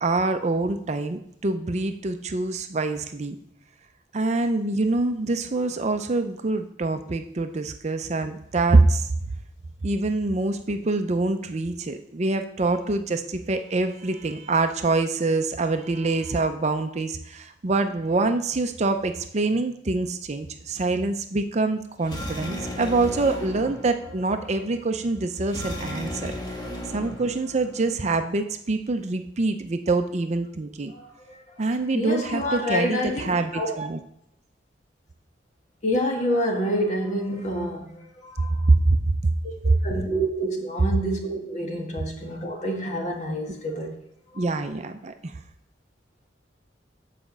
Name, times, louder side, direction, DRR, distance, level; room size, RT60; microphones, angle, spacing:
voice 1, 0.0-3.4 4.1-9.1 9.8-26.3 26.9-30.9 31.6-34.0 38.7-38.8 39.2-39.3 44.4-45.3, right 3 dB, 40° right, 7 dB, 0.5 m, -25 dB
sound 1, 22.0-28.0, equal, 25° left, 1.6 m, -36 dB
voice 2, 30.9-31.6 31.9-33.8 35.8-38.7 39.4-39.5 39.8-43.9 44.3-44.4, equal, 40° left, 1 dB, 1.6 m, -28 dB
7.5 x 5.0 x 7.1 m, 0.72 s
head